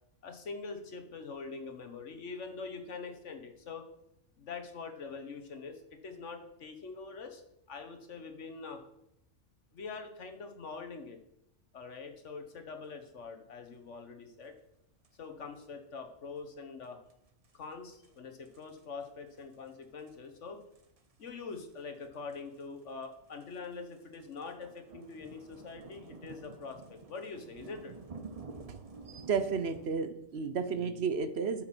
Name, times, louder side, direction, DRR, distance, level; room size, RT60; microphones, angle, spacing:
voice 1, 0.2-3.9 4.4-7.4 7.7-8.8 9.7-11.2 11.7-14.5 15.2-17.0 17.5-20.6 21.2-27.9, left 4 dB, 70° left, 6 dB, 1.6 m, -44 dB
sound 1, 15.0-15.1 16.8-16.9 17.1-17.2 17.4-17.6 17.9-18.2 18.5-19.1 19.4-19.7 20.0-20.2 20.8-29.9, right 4 dB, 35° right, 0.8 m, -50 dB
voice 2, 29.1-31.6, right 5 dB, 60° right, 11 dB, 1.0 m, -32 dB
8.8 x 7.8 x 6.0 m, 0.80 s
omnidirectional pair, 1.3 m